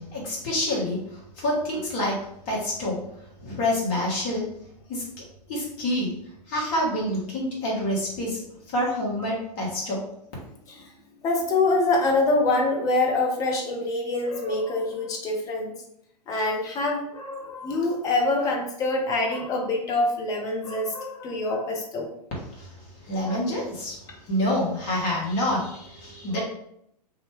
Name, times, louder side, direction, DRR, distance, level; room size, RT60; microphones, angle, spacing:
voice 1, 0.0-2.2 2.5-3.0 3.4-4.5 4.9-6.1 6.5-10.0 22.5-26.4, left 1 dB, 35° left, -4 dB, 1.1 m, -27 dB
voice 2, 11.2-15.8 16.3-22.1 23.2-23.4 26.3-26.4, left 2 dB, 15° left, 1 dB, 0.4 m, -25 dB
2.7 x 2.1 x 3.2 m, 0.74 s
figure-of-eight pair, 105°, 21 cm